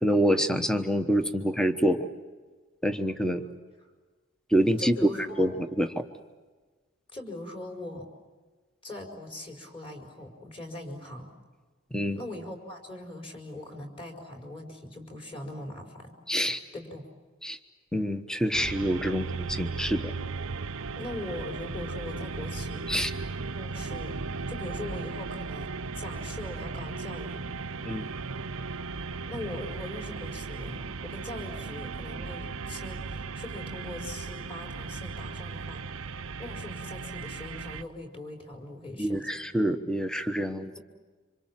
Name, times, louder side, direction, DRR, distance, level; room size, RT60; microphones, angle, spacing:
voice 1, 0.0-2.0 2.8-3.4 4.5-5.1 5.4-5.9 11.9-12.2 16.3-16.6 17.4-17.6 17.9-20.1 22.9-23.1 27.8-28.1 39.0-40.7, equal, 5° left, 8 dB, 1.1 m, -26 dB
voice 2, 4.8-5.5 7.1-8.1 8.8-11.3 12.1-16.2 16.7-17.1 20.9-22.9 23.5-24.2 24.5-27.5 29.3-35.8 36.4-39.5, left 1 dB, 25° left, 2 dB, 4.7 m, -41 dB
sound 1, 18.5-37.8, right 4 dB, 70° right, 0.8 m, -36 dB
27.0 x 26.5 x 7.5 m, 1.4 s
head